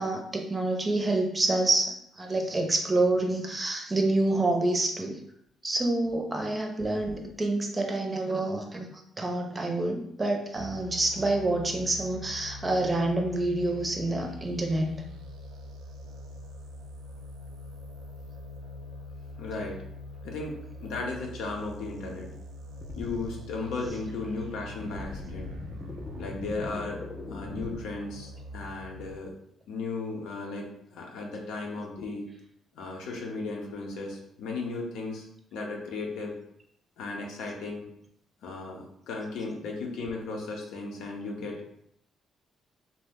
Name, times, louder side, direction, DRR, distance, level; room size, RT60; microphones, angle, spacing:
voice 1, 0.0-5.2 5.6-15.0, right 2 dB, 25° right, 3 dB, 0.6 m, -27 dB
sound 1, 10.6-29.1, left 2 dB, 85° right, 0.4 m, -43 dB
voice 2, 19.4-19.8 20.2-22.3 22.9-25.5 26.2-29.4 29.7-32.3 32.7-35.3 35.5-36.3 37.0-37.9 38.4-41.6, left 3 dB, 85° left, 0 dB, 0.6 m, -36 dB
sound 2, 22.8-23.3 23.9-24.0 24.8-27.8, left 2 dB, 35° left, 0.4 m, -41 dB
2.7 x 2.1 x 3.4 m, 0.72 s
cardioid pair, 90°, 0 cm